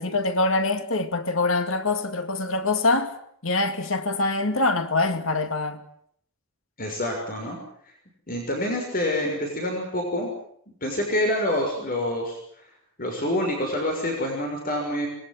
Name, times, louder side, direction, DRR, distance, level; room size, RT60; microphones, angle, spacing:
voice 1, 0.0-3.1 3.4-5.8, left 2 dB, 70° left, 2.4 m, -24 dB
voice 2, 6.8-7.6 8.3-10.3 10.8-12.4 13.0-15.1, left 1 dB, 40° left, 6.3 m, -27 dB
26.0 x 22.0 x 7.6 m
head